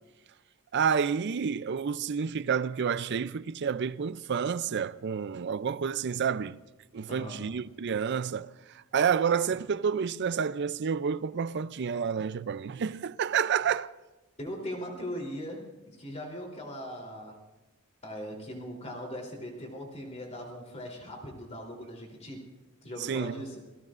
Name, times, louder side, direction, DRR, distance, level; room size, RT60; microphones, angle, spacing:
voice 1, 0.7-6.6 6.9-8.5 8.9-13.9 23.0-23.4, right 7 dB, 50° right, 0.4 m, -29 dB
voice 2, 7.1-7.6 14.4-15.6 16.0-17.4 18.0-22.4 22.8-23.6, equal, 30° left, 3.4 m, -39 dB
28.0 x 18.5 x 2.5 m
head